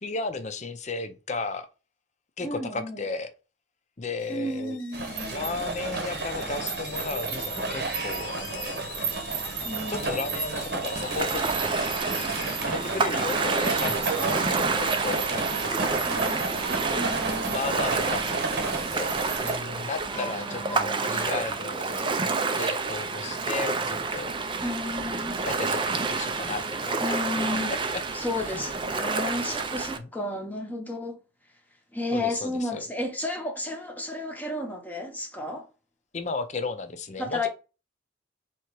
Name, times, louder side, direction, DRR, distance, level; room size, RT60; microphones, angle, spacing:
voice 1, 0.0-1.7 2.4-3.3 4.0-4.8 5.3-8.9 9.9-11.5 12.1-12.2 12.6-15.9 17.5-24.3 25.4-27.2 27.5-28.0 28.5-28.7 32.1-32.8 36.1-37.5, left 3 dB, 40° left, 0.6 m, -34 dB
voice 2, 2.4-3.1 4.3-5.8 9.6-10.1 16.1-16.5 16.9-17.6 20.1-21.5 24.6-25.4 27.0-27.7 28.1-31.2 31.9-35.7 37.2-37.5, left 1 dB, 10° left, 0.8 m, -33 dB
sound 1, 4.2-16.4, left 9 dB, 85° left, 0.6 m, -45 dB
sound 2, 4.9-19.6, right 4 dB, 60° right, 0.9 m, -31 dB
Ocean, 10.9-30.0, right 4 dB, 25° right, 0.4 m, -29 dB
3.4 x 3.0 x 4.6 m
head